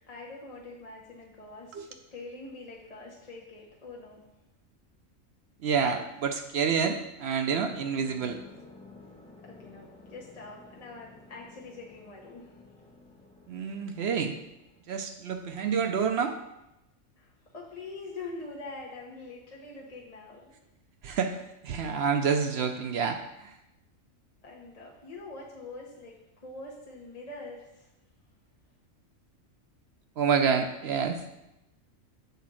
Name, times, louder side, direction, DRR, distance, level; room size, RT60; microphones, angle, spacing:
voice 1, 0.1-4.2 9.4-12.6 17.2-20.5 24.4-27.9, left 3 dB, 30° left, -3 dB, 1.0 m, -44 dB
voice 2, 5.6-8.4 13.5-14.4 14.9-16.4 21.0-23.5 30.2-31.2, right 6 dB, 65° right, 6 dB, 0.7 m, -28 dB
sound 1, 7.4-14.8, left 3 dB, 5° left, 0.6 m, -53 dB
6.8 x 4.2 x 6.1 m, 0.92 s
omnidirectional pair, 1.3 m